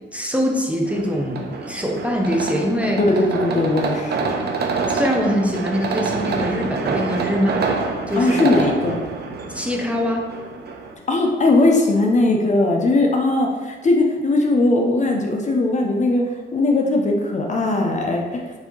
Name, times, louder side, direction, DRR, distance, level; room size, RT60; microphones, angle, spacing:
voice 1, 0.1-3.0 4.9-7.6 8.1-8.5 9.5-10.3, equal, 5° right, 0 dB, 0.7 m, -23 dB
sound 1, 0.9-10.9, right 4 dB, 55° right, 0.6 m, -26 dB
voice 2, 3.1-4.3 8.2-9.0 11.1-18.5, left 2 dB, 35° left, 1 dB, 0.6 m, -19 dB
4.8 x 2.7 x 3.9 m, 1.3 s
cardioid pair, 100°, 21 cm